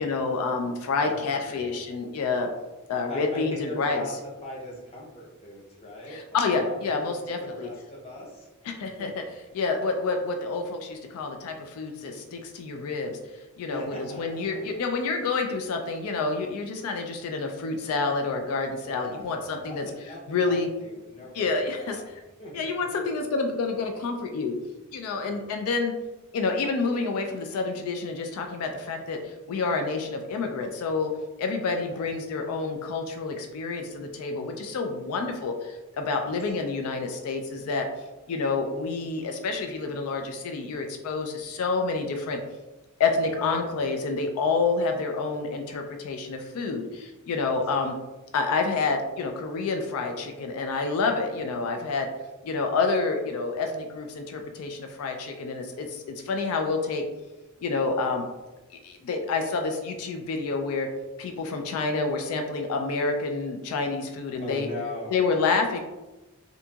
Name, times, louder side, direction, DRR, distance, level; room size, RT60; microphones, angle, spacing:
voice 1, 0.0-2.5 2.9-4.0 6.1-7.7 8.6-9.2 9.5-19.9 20.3-20.7 21.3-22.2 22.5-24.6 24.9-26.0 26.3-31.1 31.4-37.9 38.3-42.4 43.0-48.0 48.3-52.1 52.4-57.0 57.6-58.2 58.8-60.9 61.2-64.7 65.1-65.8, left 4 dB, 80° left, 4 dB, 0.3 m, -28 dB
voice 2, 1.0-1.7 3.1-6.5 6.8-9.1 13.5-14.7 18.9-22.1 22.4-23.0 25.1-25.4 31.8-32.1 36.2-36.3 43.3-43.5 64.4-65.3, left 1 dB, 30° left, -4 dB, 0.6 m, -40 dB
2.7 x 2.6 x 2.3 m, 1.1 s
head